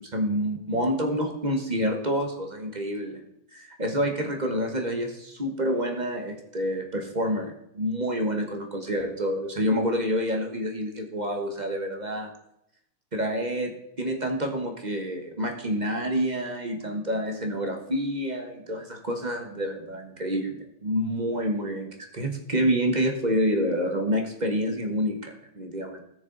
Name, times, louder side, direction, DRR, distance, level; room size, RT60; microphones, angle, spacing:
voice 1, 0.0-3.2 3.5-12.3 13.1-13.7 14.0-26.0, equal, 25° right, 3 dB, 1.0 m, -28 dB
13.5 x 6.9 x 3.9 m, 0.78 s
omnidirectional pair, 2.3 m